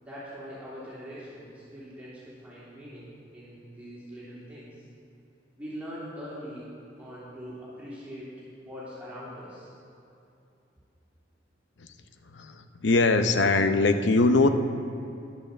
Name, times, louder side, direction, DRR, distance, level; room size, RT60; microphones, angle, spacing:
voice 1, 0.0-4.7 5.6-6.7 7.0-8.3 8.6-9.7, equal, 10° right, -10 dB, 3.2 m, -42 dB
voice 2, 12.2-14.5, left 3 dB, 75° left, 8 dB, 0.7 m, -22 dB
11.0 x 8.5 x 6.7 m, 2.7 s
head